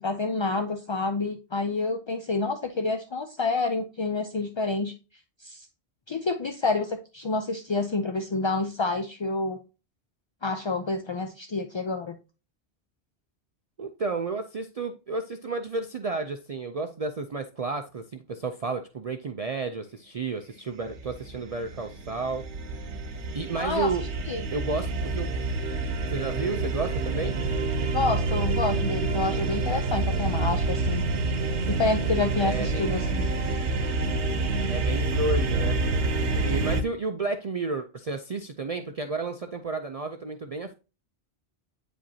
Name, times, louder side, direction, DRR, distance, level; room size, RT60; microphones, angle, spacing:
voice 1, 0.0-4.9 5.4-5.7 6.1-9.6 10.4-12.2 23.6-23.9 24.2-24.4 27.9-31.0 31.7-33.3, left 3 dB, 40° left, 0.4 m, -28 dB
voice 2, 13.8-22.4 22.7-23.0 23.3-24.0 24.5-25.3 26.1-27.3 32.4-32.9 34.7-35.8 36.4-40.7, right 3 dB, 50° right, 0.5 m, -32 dB
sound 1, 20.9-36.8, right 3 dB, 80° right, 1.1 m, -28 dB
8.9 x 5.1 x 2.7 m
omnidirectional pair, 1.1 m